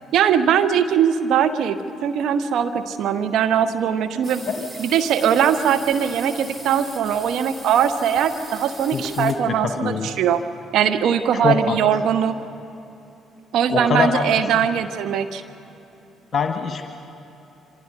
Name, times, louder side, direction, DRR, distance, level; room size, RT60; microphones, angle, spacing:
voice 1, 0.1-4.4 4.8-10.4 10.7-12.3 13.5-15.4, right 8 dB, 55° right, 9 dB, 1.0 m, -20 dB
sound 1, 4.2-9.5, right 1 dB, 15° right, 1.8 m, -39 dB
voice 2, 8.9-10.1 11.3-11.8 13.7-14.2 14.5-14.7 16.3-16.9, left 5 dB, 40° left, 5 dB, 1.4 m, -23 dB
26.5 x 25.5 x 5.5 m, 3.0 s
figure-of-eight pair, 45°, 0 cm